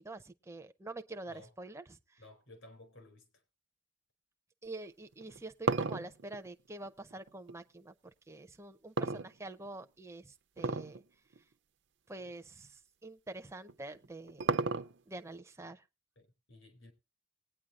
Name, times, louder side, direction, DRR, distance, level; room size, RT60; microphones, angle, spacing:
voice 1, 0.0-2.2 4.6-7.9 8.3-11.0 12.1-14.5 15.1-15.8, right 2 dB, 15° right, 0.5 m, -46 dB
voice 2, 2.2-3.4 16.2-16.9, left 2 dB, 75° left, 4.1 m, -56 dB
sound 1, 5.1-7.6 9.0-9.8 10.6-11.0 11.3-11.4 12.2-12.3 13.7-15.2, right 4 dB, 60° right, 0.6 m, -33 dB
20.0 x 9.3 x 2.4 m
head